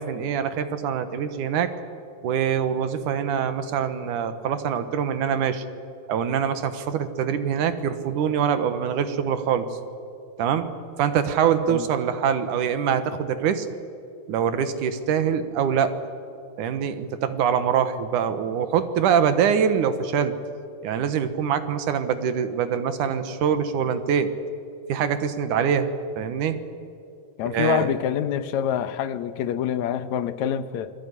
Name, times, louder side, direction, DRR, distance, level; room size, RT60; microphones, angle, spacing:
voice 1, 0.0-1.7 2.2-5.6 6.1-9.7 10.4-10.7 11.0-13.7 14.3-15.9 16.6-20.4 20.8-24.3 24.9-26.6 27.4-27.9, right 8 dB, 85° right, 10 dB, 2.9 m, -24 dB
voice 2, 27.4-30.9, left 9 dB, 70° left, 12 dB, 2.3 m, -26 dB
27.0 x 20.5 x 9.8 m, 2.5 s
omnidirectional pair, 3.5 m